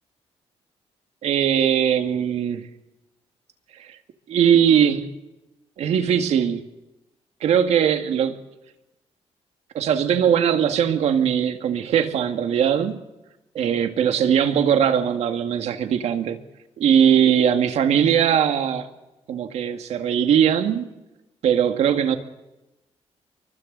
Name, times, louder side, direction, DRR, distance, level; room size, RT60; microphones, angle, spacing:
voice 1, 1.2-2.7 4.3-5.1 5.8-6.7 7.4-8.4 9.7-13.0 13.6-16.4 16.8-18.9 19.3-20.9 21.4-22.2, right 8 dB, 75° right, 7 dB, 2.0 m, -20 dB
29.0 x 24.0 x 4.0 m, 0.97 s
wide cardioid pair, 180°, 11 cm